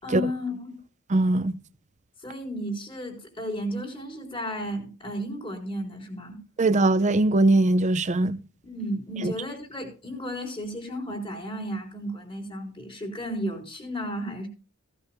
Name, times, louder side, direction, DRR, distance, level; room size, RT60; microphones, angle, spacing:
voice 1, 0.0-0.8 2.2-6.4 8.6-14.5, equal, 25° left, 4.4 m, -33 dB
voice 2, 1.1-1.6 6.6-8.4 9.2-9.3, right 2 dB, 35° right, 0.6 m, -21 dB
17.5 x 12.5 x 2.2 m
head